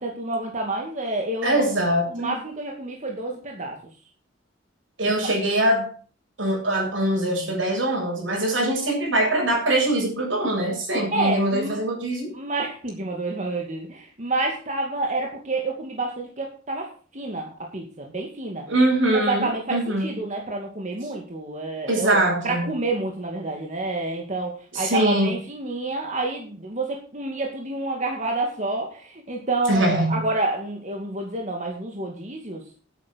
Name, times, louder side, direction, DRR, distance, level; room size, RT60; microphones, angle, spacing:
voice 1, 0.0-1.6 2.1-3.8 5.0-5.1 11.1-11.8 12.3-18.7 19.1-22.2 22.4-32.6, right 2 dB, 40° right, 0 dB, 2.3 m, -29 dB
voice 2, 1.4-2.4 5.0-5.9 6.4-12.3 18.7-20.1 21.9-22.6 24.7-25.4 29.7-30.3, right 1 dB, 80° right, -1 dB, 7.8 m, -23 dB
11.0 x 9.0 x 6.3 m, 0.40 s
head